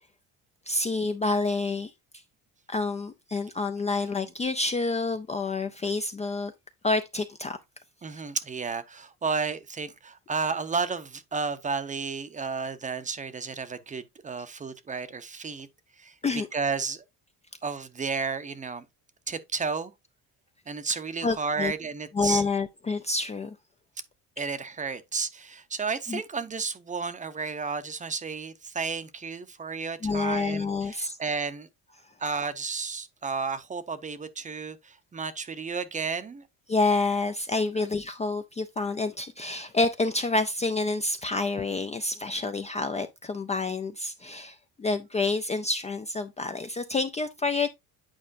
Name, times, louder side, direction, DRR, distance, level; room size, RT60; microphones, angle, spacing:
voice 1, 0.7-1.9 2.7-6.5 6.8-7.6 16.2-16.5 21.2-21.7 22.1-23.5 26.1-26.2 30.0-31.2 36.7-47.7, left 3 dB, 20° left, 0.4 m, -28 dB
voice 2, 8.0-15.7 16.0-16.1 16.5-17.0 17.6-18.8 19.3-19.9 20.7-22.4 24.4-31.7 32.2-36.4, right 5 dB, 20° right, 0.7 m, -32 dB
8.9 x 4.9 x 2.5 m
cardioid pair, 125°, 36 cm